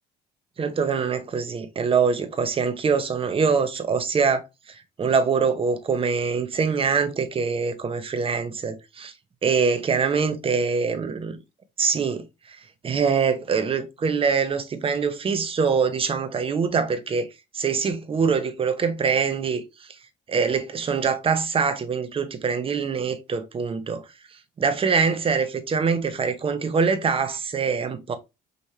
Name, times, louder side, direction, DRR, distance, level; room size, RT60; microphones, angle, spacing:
voice 1, 0.6-9.1 9.4-11.4 11.8-12.3 12.8-17.3 17.5-19.6 20.3-24.0 24.6-28.2, right 5 dB, 35° right, 0.9 m, -24 dB
5.2 x 3.2 x 2.8 m
cardioid pair, 110°, 17 cm